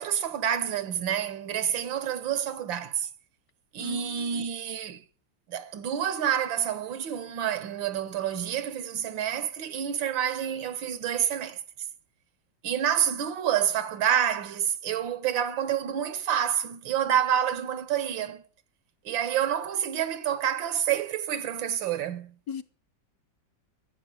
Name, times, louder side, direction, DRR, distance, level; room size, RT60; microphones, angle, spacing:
voice 1, 0.0-3.1 3.7-5.0 5.5-11.6 12.6-18.4 19.1-22.4, right 9 dB, 85° right, 1.8 m, -28 dB
voice 2, 3.8-4.4 22.5-22.6, left 7 dB, 60° left, 1.2 m, -38 dB
13.5 x 7.7 x 8.8 m
omnidirectional pair, 2.0 m